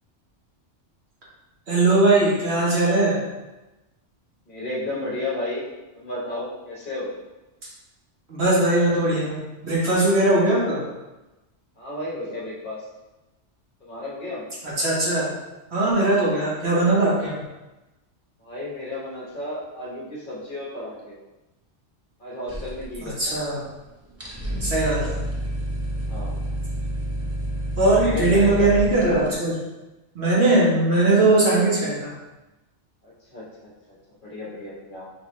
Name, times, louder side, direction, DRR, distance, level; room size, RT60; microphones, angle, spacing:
voice 1, 1.7-3.2 8.3-10.8 14.6-15.3 15.7-17.4 23.0-23.6 24.6-25.2 27.8-29.6 30.1-32.1, right 2 dB, 60° right, -7 dB, 1.6 m, -20 dB
voice 2, 4.5-5.6 5.9-7.1 11.8-12.8 13.8-14.5 18.4-21.2 22.2-23.4 26.0-26.4 27.9-28.7 33.0-33.9 34.2-35.1, left 1 dB, 45° left, -6 dB, 1.2 m, -33 dB
sound 1, 22.5-23.5 23.7-23.8 24.1-29.3, right 1 dB, 20° right, 0.4 m, -29 dB
3.8 x 3.5 x 3.2 m, 1.0 s
omnidirectional pair, 1.2 m